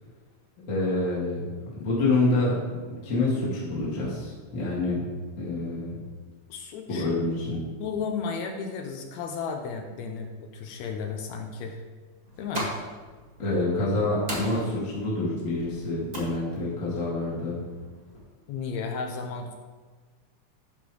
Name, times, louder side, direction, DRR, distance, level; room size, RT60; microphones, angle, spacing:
voice 1, 0.7-1.4 1.7-2.6 2.9-5.0 5.4-6.0 6.9-7.6 13.4-17.6, left 2 dB, 30° left, -7 dB, 1.8 m, -27 dB
voice 2, 6.5-7.1 7.8-11.8 12.4-12.7 18.5-19.5, left 5 dB, 75° left, 4 dB, 1.7 m, -33 dB
sound 1, 12.2-18.2, right 1 dB, 35° right, 0.6 m, -40 dB
12.0 x 4.4 x 4.8 m, 1.4 s
omnidirectional pair, 3.8 m